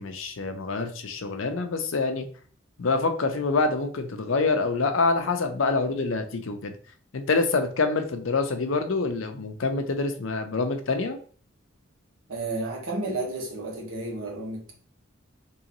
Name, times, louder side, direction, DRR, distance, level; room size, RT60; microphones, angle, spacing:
voice 1, 0.0-2.2 2.8-6.7 7.1-11.2, left 3 dB, 75° left, 7 dB, 0.6 m, -26 dB
voice 2, 12.3-14.7, right 2 dB, 90° right, -1 dB, 1.4 m, -32 dB
3.7 x 3.0 x 2.9 m, 0.42 s
head